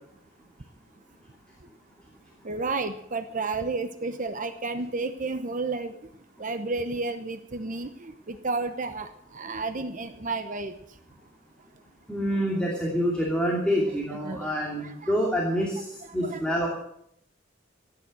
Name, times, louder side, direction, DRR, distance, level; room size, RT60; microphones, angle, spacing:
voice 1, 2.4-6.0 6.4-10.7 14.2-14.5 14.8-15.1 15.8-15.9 16.2-16.4, right 3 dB, 40° right, 9 dB, 0.9 m, -32 dB
voice 2, 12.1-16.7, equal, 5° left, -3 dB, 2.7 m, -27 dB
15.5 x 9.9 x 7.7 m, 0.73 s
head